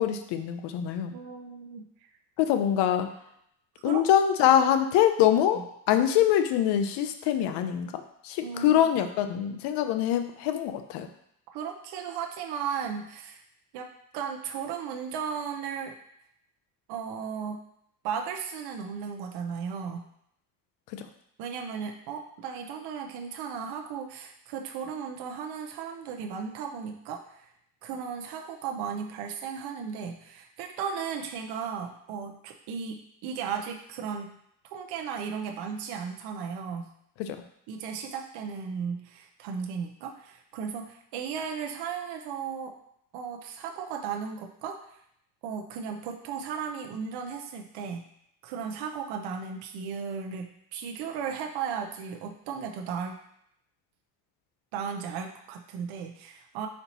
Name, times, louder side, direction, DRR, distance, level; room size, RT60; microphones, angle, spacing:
voice 1, 0.0-1.1 2.4-3.1 3.8-11.1 37.2-37.4, left 10 dB, 90° left, 8 dB, 0.6 m, -24 dB
voice 2, 1.1-1.9 3.8-4.1 8.4-8.9 11.5-13.4 13.7-16.0 16.9-17.6 18.0-20.1 21.4-27.5 27.8-34.4 34.6-36.9 37.7-42.7 43.1-45.0 45.4-48.1 48.4-53.2 54.7-56.7, right 6 dB, 75° right, 3 dB, 0.5 m, -35 dB
4.3 x 2.9 x 4.0 m, 0.73 s
cardioid pair, 170°, 40 cm